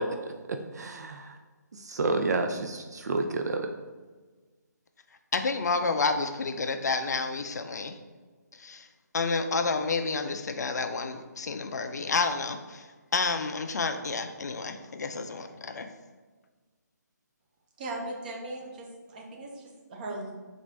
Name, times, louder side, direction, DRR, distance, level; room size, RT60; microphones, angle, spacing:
voice 1, 0.0-1.4 1.7-3.7, right 3 dB, 65° right, 5 dB, 0.4 m, -30 dB
voice 2, 5.3-8.0 8.6-8.9 9.1-12.8 13.1-15.9, left 4 dB, 65° left, 7 dB, 0.4 m, -30 dB
voice 3, 17.8-20.3, right 2 dB, 30° right, -1 dB, 0.7 m, -38 dB
4.3 x 2.5 x 3.3 m, 1.4 s
figure-of-eight pair, 155°, 10 cm